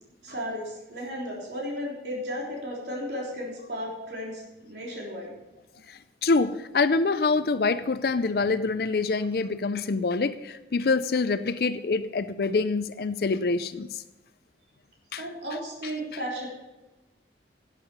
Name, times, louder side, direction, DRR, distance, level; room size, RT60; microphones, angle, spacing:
voice 1, 0.2-5.3 15.2-16.5, equal, 70° right, -4 dB, 3.6 m, -34 dB
voice 2, 6.2-13.9 15.1-15.2, left 3 dB, 55° left, 13 dB, 0.5 m, -25 dB
11.5 x 8.4 x 5.5 m, 1.0 s
head